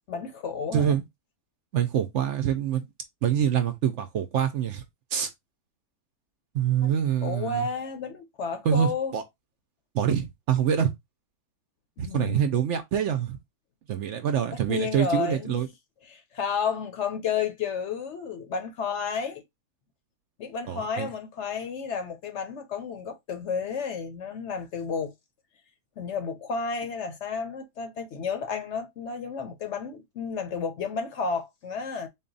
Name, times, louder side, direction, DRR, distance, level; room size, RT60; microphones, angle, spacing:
voice 1, 0.1-1.0 6.8-6.9 7.2-9.1 12.0-12.6 14.7-15.6 16.1-19.4 20.4-25.1 26.0-32.1, left 5 dB, 60° left, 0.8 m, -31 dB
voice 2, 0.7-1.0 1.7-2.8 3.2-4.8 5.1-5.3 6.5-7.7 8.6-9.2 9.9-10.9 12.0-13.4 13.9-15.7 20.7-21.1, right 9 dB, 65° right, 0.8 m, -25 dB
4.0 x 2.3 x 3.8 m
omnidirectional pair, 1.5 m